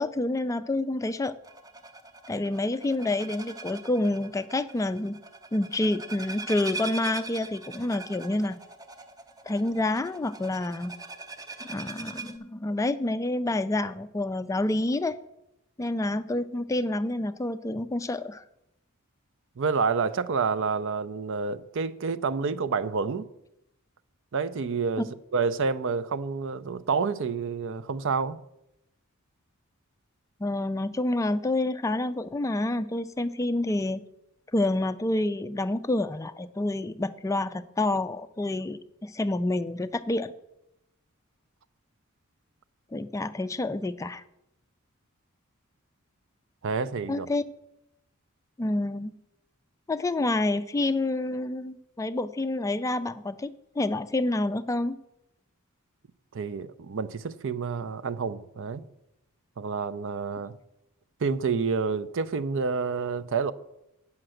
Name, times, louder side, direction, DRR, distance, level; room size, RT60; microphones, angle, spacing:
voice 1, 0.0-1.3 2.3-5.2 5.5-8.6 9.5-10.9 11.7-15.2 15.8-18.4 30.4-34.0 34.5-40.3 42.9-44.2 47.1-47.4 48.6-49.2 49.9-55.0, left 2 dB, 15° left, 0.3 m, -28 dB
sound 1, 1.4-12.4, right 3 dB, 15° right, 0.6 m, -42 dB
voice 2, 19.6-23.2 24.3-28.4 46.6-47.3 56.3-58.8 59.6-60.6 61.2-63.5, right 5 dB, 60° right, 0.5 m, -28 dB
8.8 x 5.8 x 7.6 m
head